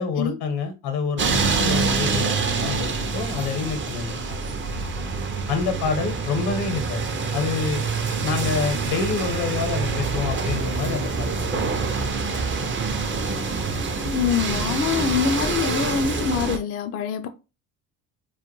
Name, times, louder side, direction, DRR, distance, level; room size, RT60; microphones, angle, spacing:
voice 1, 0.0-4.4 5.5-7.0 7.3-7.8 8.2-11.8, left 5 dB, 75° left, 0.9 m, -27 dB
sound 1, 1.2-16.6, right 4 dB, 30° right, 0.5 m, -26 dB
voice 2, 14.1-17.3, left 7 dB, 35° left, 0.4 m, -24 dB
2.3 x 2.1 x 3.0 m
supercardioid pair, 60°, 40 cm